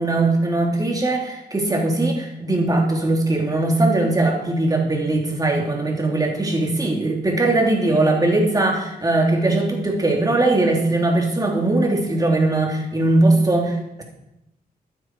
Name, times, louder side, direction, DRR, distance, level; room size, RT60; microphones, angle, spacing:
voice 1, 0.0-14.0, right 2 dB, 25° right, 0 dB, 3.1 m, -20 dB
13.0 x 9.3 x 4.7 m, 0.88 s
cardioid pair, 95°, 16 cm